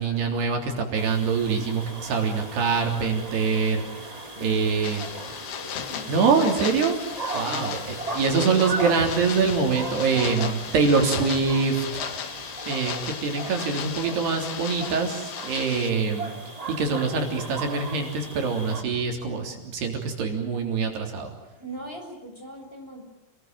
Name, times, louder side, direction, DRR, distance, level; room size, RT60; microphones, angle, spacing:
voice 1, 0.0-3.8 4.4-5.0 6.1-7.0 7.3-7.8 8.1-11.9 12.1-12.4 12.7-16.3 16.7-21.3, right 5 dB, 70° right, 3 dB, 5.5 m, -24 dB
sound 1, 1.0-18.8, right 2 dB, 15° right, 1.8 m, -37 dB
voice 2, 4.3-5.2 5.5-6.4 7.3-7.8 21.6-23.0, equal, 10° left, 1 dB, 7.1 m, -41 dB
sound 2, 4.8-15.9, left 9 dB, 75° left, 3.6 m, -36 dB
29.5 x 21.5 x 9.2 m, 0.86 s
omnidirectional pair, 4.8 m